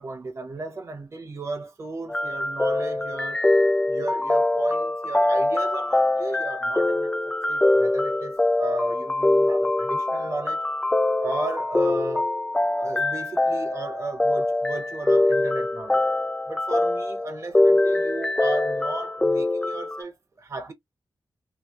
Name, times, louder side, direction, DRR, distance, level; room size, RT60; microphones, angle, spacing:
voice 1, 0.0-3.5 3.9-7.2 7.5-10.6 11.2-12.3 12.8-16.0 16.5-20.7, right 3 dB, 35° right, 0.6 m, -35 dB
sound 1, 2.1-20.0, left 2 dB, 10° left, 0.3 m, -23 dB
2.9 x 2.9 x 2.3 m
wide cardioid pair, 105°, 8 cm